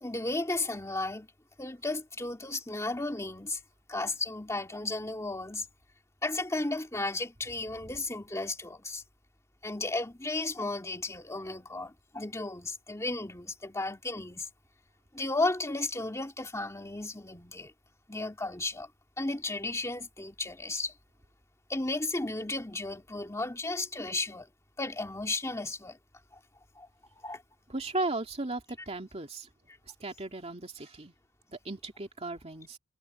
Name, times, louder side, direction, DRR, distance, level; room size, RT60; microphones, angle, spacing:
voice 1, 0.0-1.3 1.6-3.6 3.9-5.7 6.2-9.0 9.6-14.5 15.1-17.7 18.1-18.9 19.2-20.9 21.7-24.5 24.8-26.0 26.3-26.4 26.8-26.9 27.2-27.4, left 2 dB, 15° left, 2.1 m, -34 dB
voice 2, 27.7-29.5 30.0-31.1 31.5-32.8, right 2 dB, 30° right, 2.6 m, -36 dB
head